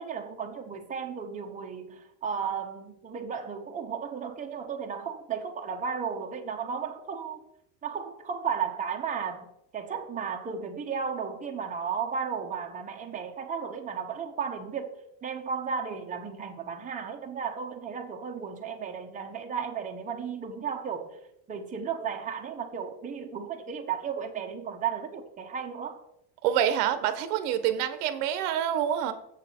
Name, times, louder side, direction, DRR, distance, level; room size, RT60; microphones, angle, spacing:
voice 1, 0.0-7.4 7.8-9.5 9.7-14.9 15.2-21.2 21.5-26.0, right 6 dB, 15° right, 0.8 m, -34 dB
voice 2, 26.4-29.1, right 10 dB, 90° right, 1.0 m, -27 dB
7.4 x 6.6 x 4.3 m
cardioid pair, 150°, 45 cm